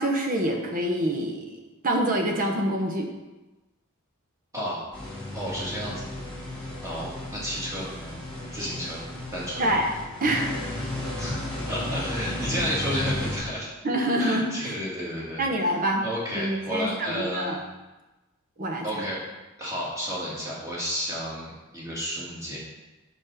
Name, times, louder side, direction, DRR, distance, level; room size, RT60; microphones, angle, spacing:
voice 1, 0.0-3.1 9.6-9.9 10.2-10.7 13.8-14.8 15.4-16.0 16.3-17.6 18.6-19.0, right 1 dB, 40° right, 2 dB, 0.9 m, -26 dB
voice 2, 4.5-4.9 5.3-6.0 6.8-7.9 8.5-9.0 9.3-9.7 11.2-11.4 11.7-13.7 14.2-15.4 16.0-17.6 18.8-19.2 19.6-22.6, equal, 15° right, -6 dB, 2.0 m, -31 dB
sound 1, 4.9-13.4, left 1 dB, 5° left, 2.2 m, -34 dB
6.3 x 5.2 x 5.0 m, 1.1 s
head